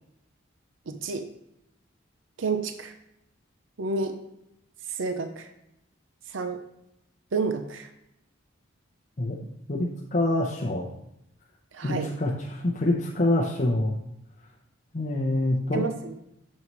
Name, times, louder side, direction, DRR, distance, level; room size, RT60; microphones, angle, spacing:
voice 1, 0.9-1.3 2.4-2.9 3.8-4.2 4.9-5.5 6.3-6.6 7.3-7.9 11.7-12.1 15.7-16.1, right 4 dB, 70° right, 8 dB, 0.6 m, -30 dB
voice 2, 9.7-10.9 11.8-13.9 14.9-15.9, left 1 dB, 40° left, -3 dB, 0.8 m, -26 dB
9.1 x 5.5 x 3.1 m, 0.83 s
head